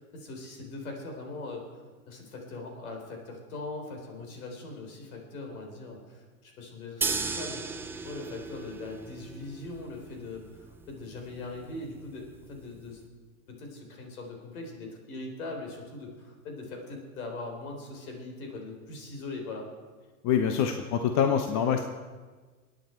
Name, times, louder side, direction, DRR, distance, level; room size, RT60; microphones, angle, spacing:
voice 1, 0.0-1.6 2.1-7.6 8.0-13.0 13.6-19.7, left 3 dB, 70° left, 2 dB, 4.0 m, -41 dB
sound 1, 7.0-13.0, right 4 dB, 5° right, 0.4 m, -37 dB
voice 2, 20.2-21.8, left 8 dB, 40° left, 6 dB, 1.0 m, -25 dB
24.0 x 9.3 x 4.5 m, 1.4 s
hypercardioid pair, 115°, 44 cm